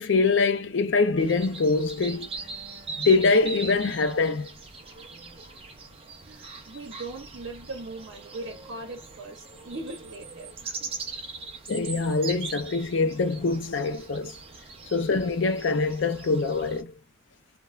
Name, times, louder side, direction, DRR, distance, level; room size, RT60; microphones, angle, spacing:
voice 1, 0.0-2.3 3.0-4.5 11.7-14.3 14.9-16.9, left 4 dB, 65° left, 0.5 m, -24 dB
sound 1, 1.2-16.8, right 4 dB, 30° right, 0.5 m, -41 dB
voice 2, 6.2-10.9 14.6-14.7, right 2 dB, 65° right, 0.7 m, -40 dB
2.3 x 2.1 x 3.0 m
head